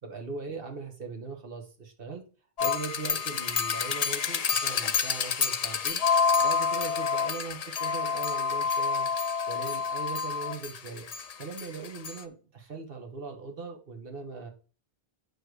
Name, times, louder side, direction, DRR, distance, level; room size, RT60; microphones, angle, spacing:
voice 1, 0.0-2.2 2.6-6.0 6.4-9.1 9.5-11.0 11.4-14.5, right 4 dB, 55° right, 3 dB, 1.7 m, -40 dB
sound 1, 2.6-12.2, left 6 dB, 45° left, 0.5 m, -28 dB
8.9 x 3.4 x 6.3 m, 0.38 s
omnidirectional pair, 1.1 m